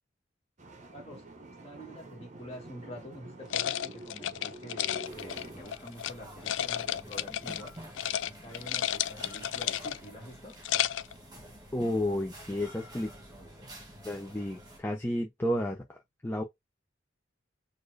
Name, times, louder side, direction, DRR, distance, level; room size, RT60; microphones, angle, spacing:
sound 1, 0.6-5.6, right 1 dB, 40° right, 0.8 m, -47 dB
voice 1, 0.7-1.4 1.6-7.7 8.3-10.6, equal, 35° left, 1.9 m, -47 dB
sound 2, 3.5-6.1 6.5-7.7 8.0-8.3 8.5-10.1 10.5-11.1, left 11 dB, 70° left, 0.3 m, -32 dB
sound 3, 5.0-14.8, right 1 dB, 20° right, 1.5 m, -49 dB
voice 2, 11.7-13.1 14.0-16.4, left 1 dB, 10° left, 0.6 m, -31 dB
4.3 x 2.6 x 3.2 m
head